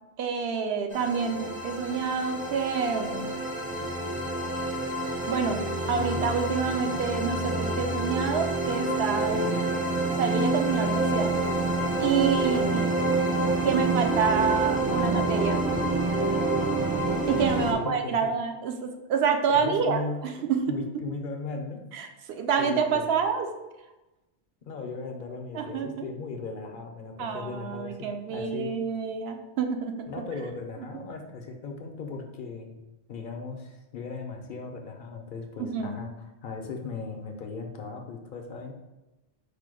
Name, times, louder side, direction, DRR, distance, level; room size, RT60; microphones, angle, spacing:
voice 1, 0.2-3.3 5.3-5.6 5.9-9.7 10.1-11.3 11.9-13.0 13.6-15.6 17.3-20.8 21.9-23.5 25.5-25.9 27.2-30.1 35.6-35.9, right 6 dB, 70° right, 5 dB, 0.8 m, -28 dB
sound 1, 0.9-17.7, right 2 dB, 10° right, 0.4 m, -27 dB
voice 2, 9.3-9.7 12.4-12.9 17.6-18.3 19.5-21.8 22.6-23.1 24.6-28.7 30.1-32.8 33.1-38.7, left 4 dB, 55° left, 3 dB, 0.7 m, -37 dB
5.0 x 2.2 x 4.8 m, 1.0 s
omnidirectional pair, 1.1 m